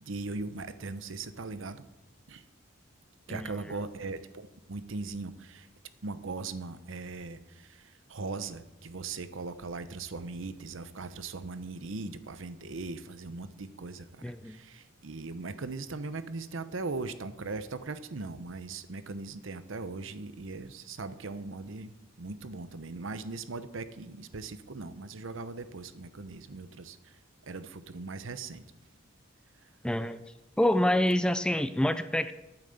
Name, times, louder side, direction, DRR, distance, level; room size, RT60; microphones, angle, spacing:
voice 1, 0.0-1.8 2.3-2.4 3.3-5.7 6.0-28.6 29.6-29.7, right 3 dB, 70° right, 12 dB, 0.8 m, -39 dB
voice 2, 14.2-14.6 29.8-30.2 30.6-32.3, left 1 dB, 5° left, 11 dB, 0.4 m, -27 dB
9.0 x 9.0 x 7.8 m, 1.0 s
head